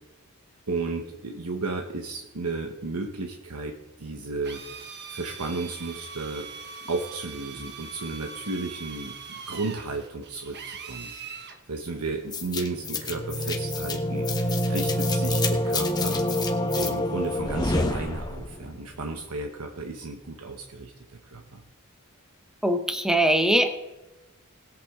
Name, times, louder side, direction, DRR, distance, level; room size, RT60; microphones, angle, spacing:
voice 1, 0.7-3.7 4.0-4.6 5.1-6.5 6.9-16.3 16.7-20.9 21.2-21.6, right 3 dB, 80° right, 3 dB, 1.1 m, -33 dB
Drill, 4.4-11.6, right 5 dB, 50° right, 1.2 m, -41 dB
sound 1, 12.3-18.7, left 1 dB, 20° left, 1.2 m, -26 dB
voice 2, 22.6-23.8, right 1 dB, 5° right, 7 dB, 0.9 m, -22 dB
19.5 x 8.4 x 3.7 m, 1.0 s
head